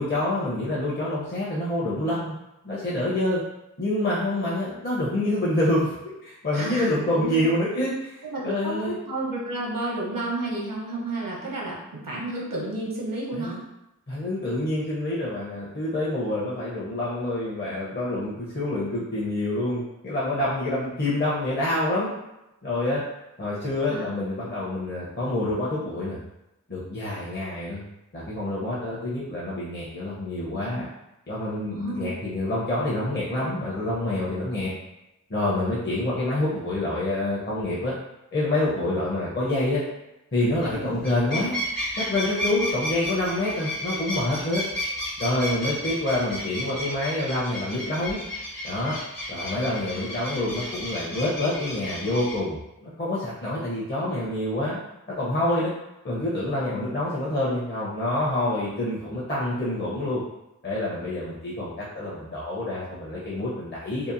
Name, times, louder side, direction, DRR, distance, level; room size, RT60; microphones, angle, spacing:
voice 1, 0.0-2.4 2.6-3.4 3.8-5.9 6.2-9.0 13.3-13.6 14.1-22.1 22.6-23.0 23.4-26.2 26.7-27.8 28.1-30.9 31.3-34.7 35.3-37.9 38.3-39.8 40.3-41.6 41.9-44.6 45.2-48.2 48.6-49.0 49.3-54.8 55.2-55.7 56.0-60.2 60.6-64.1, left 1 dB, 35° left, -7 dB, 0.6 m, -27 dB
voice 2, 6.5-7.4 8.2-13.6 23.9-24.1 31.7-32.1 40.7-41.0, right 2 dB, 75° right, -4 dB, 0.8 m, -31 dB
sound 1, 40.5-40.7 41.0-52.4, left 1 dB, 85° left, 0.9 m, -33 dB
2.8 x 2.1 x 2.5 m, 0.90 s
wide cardioid pair, 60°, 33 cm